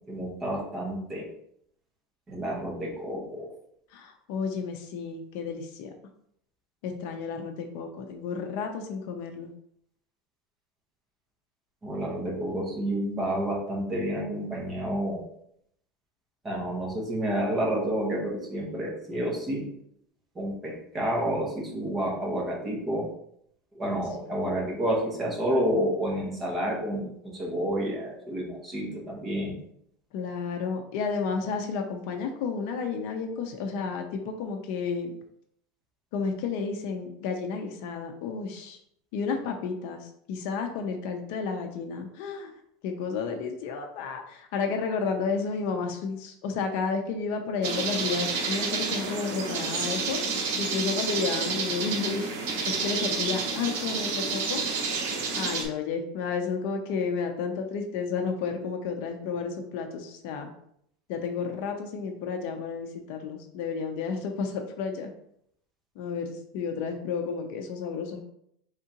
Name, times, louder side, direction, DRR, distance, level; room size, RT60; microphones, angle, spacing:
voice 1, 0.1-1.3 2.3-3.5 11.8-15.2 16.4-19.7 20.3-23.1 23.7-29.6, right 1 dB, 15° right, -3 dB, 1.0 m, -29 dB
voice 2, 3.9-5.9 6.8-9.5 24.2-24.4 30.1-35.1 36.1-38.8 39.1-42.5 42.8-50.2 50.6-52.3 52.7-54.6 55.3-60.5 61.1-65.1 66.0-68.2, left 5 dB, 55° left, 4 dB, 0.5 m, -32 dB
sound 1, 47.6-55.7, right 4 dB, 65° right, 0.9 m, -30 dB
4.8 x 3.6 x 2.8 m, 0.72 s
supercardioid pair, 180°, 0 cm